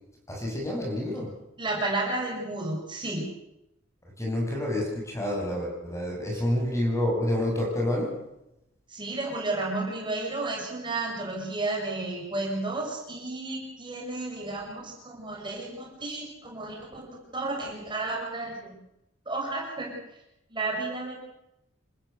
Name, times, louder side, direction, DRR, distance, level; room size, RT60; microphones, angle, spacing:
voice 1, 0.3-1.4 4.2-8.2, left 1 dB, 15° left, -1 dB, 7.6 m, -28 dB
voice 2, 1.6-3.3 6.3-6.4 8.9-18.7 19.2-20.0 20.5-21.1, right 2 dB, 25° right, -1 dB, 6.8 m, -32 dB
28.0 x 15.0 x 8.1 m, 0.85 s
head